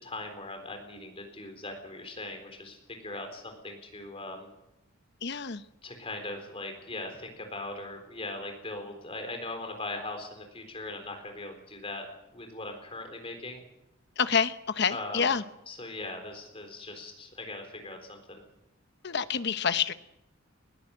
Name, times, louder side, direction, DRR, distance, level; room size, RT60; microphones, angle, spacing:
voice 1, 0.0-4.5 5.8-12.1 12.3-13.6 14.9-18.4, left 2 dB, 25° left, 4 dB, 4.0 m, -40 dB
voice 2, 5.2-5.6 14.2-15.4 19.0-19.9, left 6 dB, 55° left, 12 dB, 0.9 m, -27 dB
20.5 x 16.5 x 7.9 m, 0.87 s
head